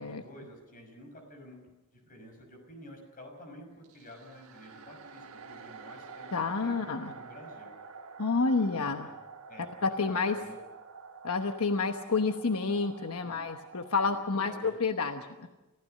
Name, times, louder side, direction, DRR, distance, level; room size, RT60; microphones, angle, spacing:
voice 1, 0.0-1.6 1.9-7.8 8.6-9.1 9.5-10.6 13.2-13.4 14.1-14.7, left 1 dB, 40° left, 3 dB, 6.0 m, -50 dB
sound 1, 3.8-14.3, right 5 dB, 75° right, 1.5 m, -48 dB
voice 2, 6.3-7.1 8.2-9.1 9.8-10.4 11.2-15.5, left 4 dB, 80° left, 6 dB, 1.1 m, -29 dB
29.5 x 15.5 x 6.6 m, 1.1 s
head